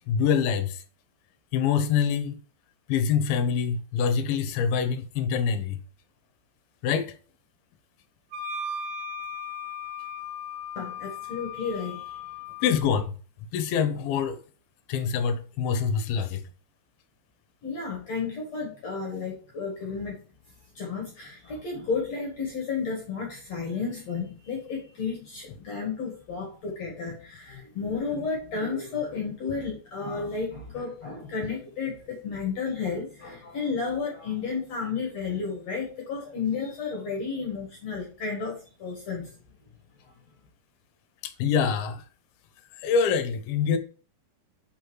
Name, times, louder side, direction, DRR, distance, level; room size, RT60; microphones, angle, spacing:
voice 1, 0.1-0.8 1.5-2.4 2.9-5.8 6.8-7.1 12.6-13.1 13.5-14.4 14.9-16.4 41.2-42.0 42.8-43.8, left 7 dB, 75° left, 2.4 m, -25 dB
Wind instrument woodwind instrument, 8.3-12.8, left 4 dB, 70° right, 3.2 m, -37 dB
voice 2, 10.8-12.2 17.6-20.2 20.8-39.3, left 5 dB, 55° left, 2.0 m, -32 dB
5.4 x 5.2 x 4.6 m
omnidirectional pair, 5.0 m